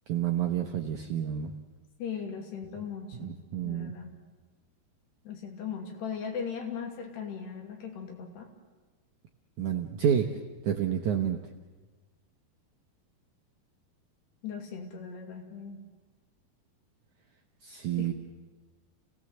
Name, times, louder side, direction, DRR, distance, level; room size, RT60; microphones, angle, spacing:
voice 1, 0.1-1.5 3.2-3.9 9.6-10.3 10.6-11.4 17.6-18.1, right 9 dB, 75° right, 4 dB, 1.8 m, -29 dB
voice 2, 2.0-3.4 3.6-4.1 5.2-8.5 14.4-15.8 18.0-18.1, left 6 dB, 75° left, 3 dB, 4.7 m, -38 dB
29.5 x 17.5 x 7.9 m, 1.3 s
omnidirectional pair, 4.8 m